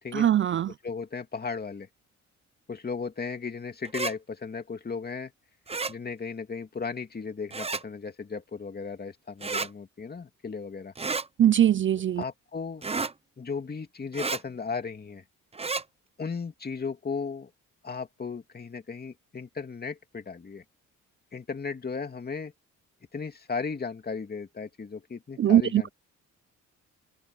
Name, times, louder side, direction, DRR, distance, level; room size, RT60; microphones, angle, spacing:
voice 1, 0.1-0.7 11.4-12.2 25.4-25.9, right 10 dB, 40° right, 0.5 m, -21 dB
voice 2, 0.8-1.9 2.7-5.3 5.9-10.9 12.2-12.8 13.4-15.2 16.2-17.5 17.8-20.6 21.3-22.5 23.1-25.9, left 5 dB, 30° left, 2.7 m, -35 dB
sound 1, 3.8-4.1 5.7-5.9 7.5-7.8 9.4-9.7 11.0-11.3 12.8-13.1 14.1-14.4 15.5-15.8, right 4 dB, 20° right, 1.0 m, -31 dB
cardioid pair, 90°, 30 cm